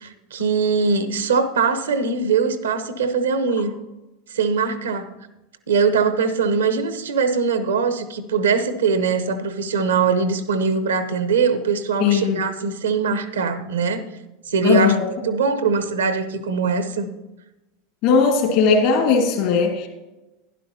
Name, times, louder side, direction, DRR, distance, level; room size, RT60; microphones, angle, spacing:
voice 1, 0.0-3.7 4.3-5.1 5.7-14.0 14.5-17.1, right 5 dB, 80° right, 10 dB, 1.0 m, -21 dB
voice 2, 12.0-12.4 14.6-15.0 18.0-19.9, left 5 dB, 60° left, 3 dB, 2.3 m, -18 dB
11.5 x 11.0 x 2.8 m, 1.0 s
hypercardioid pair, 85°, 0 cm